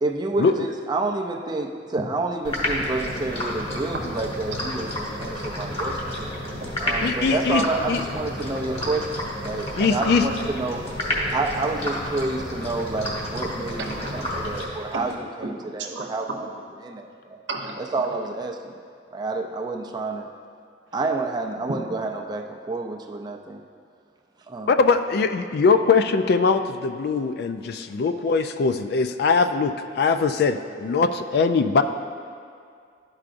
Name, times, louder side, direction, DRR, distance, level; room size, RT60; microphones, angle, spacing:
voice 1, 0.0-6.1 6.8-10.8 11.3-16.5 16.8-17.4 17.8-18.7 19.1-20.3 20.9-23.6 24.5-24.8, right 3 dB, 25° right, 2 dB, 0.4 m, -29 dB
sound 1, 2.4-15.1, left 1 dB, 35° left, 1.1 m, -30 dB
voice 2, 6.1-6.8 9.7-9.8 13.8-14.5 14.9-15.1 15.4-16.4 17.5-17.8, right 3 dB, 90° right, 2 dB, 0.8 m, -35 dB
voice 3, 7.0-7.6 7.9-8.0 9.8-10.2 24.7-31.8, left 4 dB, 60° left, 9 dB, 0.3 m, -21 dB
11.5 x 4.8 x 2.5 m, 2.2 s
head